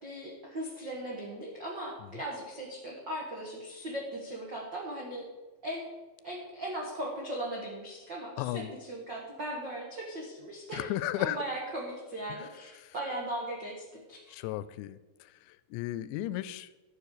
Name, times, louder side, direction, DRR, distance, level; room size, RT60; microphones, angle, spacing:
voice 1, 0.0-5.3 5.6-5.9 6.2-14.5, right 1 dB, 70° right, -3 dB, 1.0 m, -38 dB
voice 2, 8.4-8.7 10.7-11.4 14.3-15.0 15.7-16.7, left 14 dB, 90° left, 15 dB, 2.9 m, -34 dB
13.0 x 7.0 x 6.7 m, 1.2 s
omnidirectional pair, 5.0 m